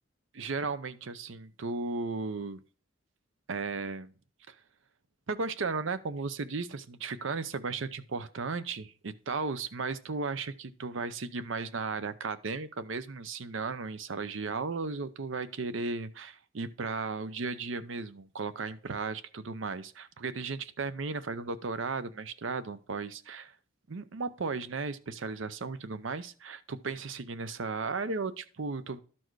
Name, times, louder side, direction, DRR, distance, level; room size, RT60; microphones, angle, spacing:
voice 1, 0.3-2.6 3.5-4.1 4.5-4.6 5.3-23.5 23.9-29.0, right 4 dB, 70° right, 13 dB, 0.6 m, -35 dB
12.5 x 4.4 x 4.6 m, 0.40 s
head